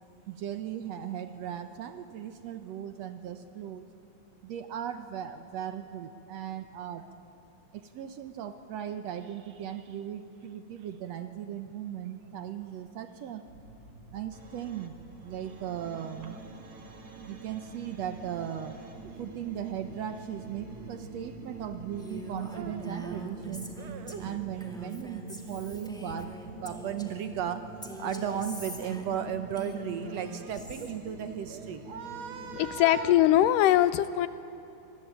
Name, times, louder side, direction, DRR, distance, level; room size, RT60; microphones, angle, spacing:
voice 1, 0.3-3.8 4.4-7.1 7.7-13.5 14.1-16.5 17.2-18.8 19.0-33.2, right 9 dB, 70° right, 9 dB, 1.8 m, -37 dB
sound 1, 13.5-32.6, right 3 dB, 35° right, 1.6 m, -46 dB
Female speech woman speaking, 22.0-27.3 27.8-30.9, right 1 dB, ahead, 1.3 m, -43 dB
voice 2, 32.5-34.3, left 13 dB, 90° left, 14 dB, 2.4 m, -22 dB
26.0 x 20.0 x 8.9 m, 2.9 s
omnidirectional pair, 3.7 m